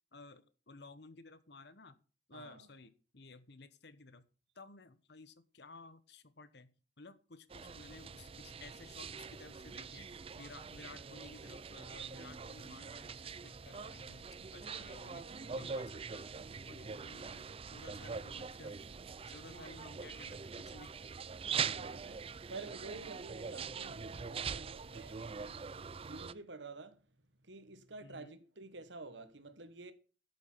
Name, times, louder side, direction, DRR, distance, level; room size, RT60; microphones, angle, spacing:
voice 1, 0.1-2.0 2.3-4.3 4.5-15.2 15.5-16.3 16.7-18.8 19.3-20.9 28.0-28.4, left 3 dB, 65° left, 1.2 m, -55 dB
voice 2, 2.3-2.7 14.9-16.0 19.5-19.8 21.4-27.1 27.4-29.9, right 3 dB, 80° right, 1.6 m, -51 dB
sound 1, 7.5-26.3, right 6 dB, 30° right, 0.5 m, -43 dB
12.0 x 7.1 x 5.7 m
head